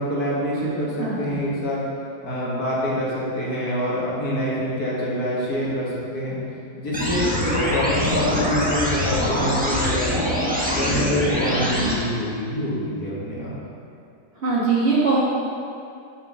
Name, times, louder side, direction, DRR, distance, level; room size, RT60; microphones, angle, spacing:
voice 1, 0.0-1.8 2.2-6.4 6.8-10.2 10.7-13.5, equal, 55° left, -7 dB, 2.1 m, -25 dB
voice 2, 1.0-1.4 14.4-15.2, right 4 dB, 40° right, -7 dB, 1.3 m, -21 dB
sound 1, 6.9-11.9, left 1 dB, 5° right, 0.8 m, -24 dB
6.7 x 5.2 x 6.7 m, 2.5 s
omnidirectional pair, 2.1 m